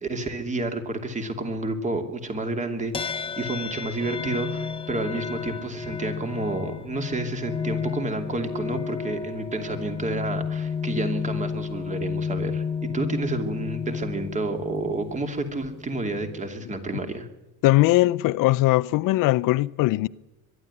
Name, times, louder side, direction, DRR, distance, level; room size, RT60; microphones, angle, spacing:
voice 1, 0.0-12.6 12.9-17.3, right 2 dB, 20° right, 2.7 m, -30 dB
sound 1, 2.9-16.5, left 6 dB, 15° left, 0.8 m, -32 dB
voice 2, 17.6-20.1, left 18 dB, 75° left, 0.6 m, -20 dB
22.5 x 12.5 x 9.7 m
cardioid pair, 145°, 34 cm